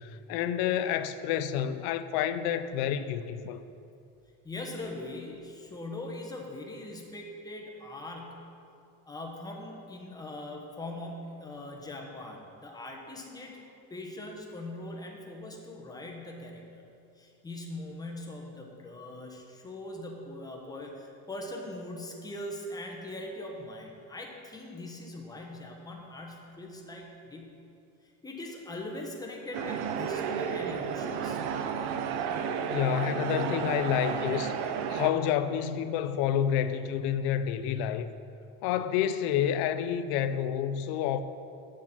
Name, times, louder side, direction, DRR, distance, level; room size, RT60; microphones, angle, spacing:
voice 1, 0.0-3.6 32.7-34.6 34.9-38.1 38.6-41.2, left 9 dB, 80° left, 0.6 m, -29 dB
voice 2, 4.4-8.5 9.0-13.6 13.9-16.8 17.2-27.6 28.2-31.4, left 1 dB, 10° left, 1.1 m, -41 dB
sound 1, 29.5-35.1, right 7 dB, 85° right, 0.7 m, -32 dB
7.3 x 6.5 x 6.0 m
cardioid pair, 130°, 36 cm